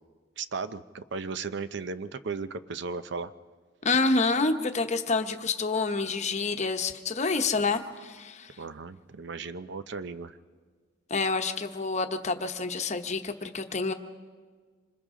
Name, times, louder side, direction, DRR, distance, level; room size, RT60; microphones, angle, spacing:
voice 1, 0.4-3.3 7.6-7.8 8.6-10.4, right 4 dB, 65° right, 12 dB, 0.6 m, -36 dB
voice 2, 3.8-8.6 11.1-13.9, left 3 dB, 40° left, 6 dB, 1.0 m, -28 dB
26.5 x 26.0 x 3.8 m, 1.5 s
head